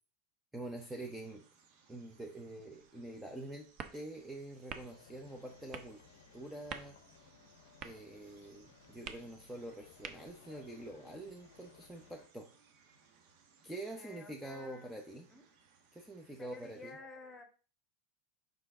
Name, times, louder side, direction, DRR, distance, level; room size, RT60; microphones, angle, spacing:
voice 1, 0.5-1.5 1.9-6.0 6.3-7.0 7.8-12.5 13.6-15.3 15.9-17.0, right 1 dB, 5° right, 2 dB, 0.9 m, -46 dB
sound 1, 0.8-16.9, right 5 dB, 60° right, 1.4 m, -67 dB
sound 2, 2.6-10.6, right 7 dB, 40° right, 0.8 m, -52 dB
sound 3, 4.9-12.3, left 9 dB, 80° left, 0.6 m, -61 dB
voice 2, 13.9-15.4 16.3-17.4, left 3 dB, 15° left, 5 dB, 1.6 m, -52 dB
5.5 x 5.2 x 3.7 m, 0.38 s
hypercardioid pair, 105°, 0 cm